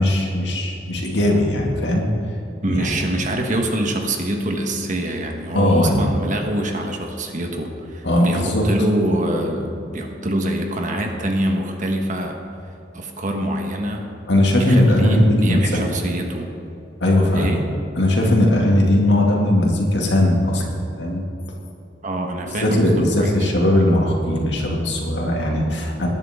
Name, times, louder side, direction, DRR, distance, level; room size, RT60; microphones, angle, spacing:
voice 1, 0.0-2.1 2.7-2.9 5.5-6.1 8.0-8.6 14.3-16.0 17.0-17.5 18.0-21.2 22.6-26.1, left 1 dB, 70° left, -1 dB, 2.4 m, -18 dB
voice 2, 2.6-12.4 12.9-14.1 14.6-16.5 17.3-17.6 22.0-23.5, right 1 dB, 45° right, 3 dB, 1.4 m, -25 dB
19.5 x 10.5 x 3.7 m, 2.7 s
head